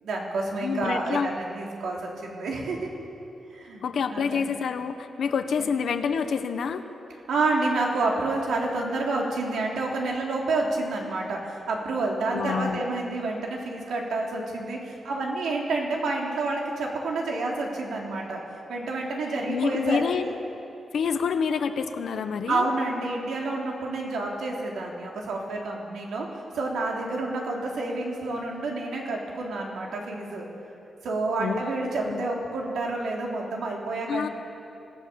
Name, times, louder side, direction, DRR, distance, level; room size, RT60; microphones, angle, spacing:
voice 1, 0.0-2.9 3.5-3.8 4.1-4.5 5.6-5.7 7.3-18.4 18.7-20.3 22.5-30.5 31.0-34.3, right 2 dB, 85° right, -1 dB, 3.6 m, -29 dB
voice 2, 0.6-1.3 3.8-6.8 12.3-12.8 19.5-20.3 20.9-22.7 31.4-32.3 34.1-34.3, left 6 dB, 60° left, 8 dB, 1.1 m, -27 dB
25.0 x 16.5 x 7.0 m, 2.8 s
wide cardioid pair, 180°, 0 cm